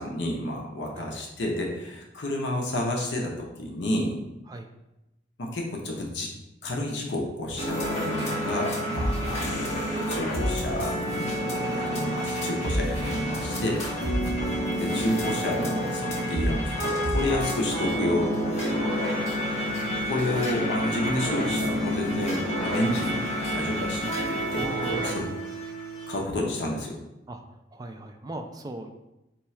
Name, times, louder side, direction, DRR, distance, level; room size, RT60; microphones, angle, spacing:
voice 1, 0.0-4.2 5.4-6.3 6.6-11.0 11.3-13.8 14.8-18.3 18.6-18.8 20.0-24.7 25.0-25.3 26.1-27.0, left 1 dB, 65° left, 0 dB, 0.7 m, -30 dB
sound 1, 7.6-26.2, equal, 40° left, 1.0 m, -29 dB
voice 2, 24.5-25.4 27.3-28.9, right 2 dB, 20° right, 5 dB, 0.3 m, -40 dB
4.5 x 2.3 x 4.2 m, 0.94 s
head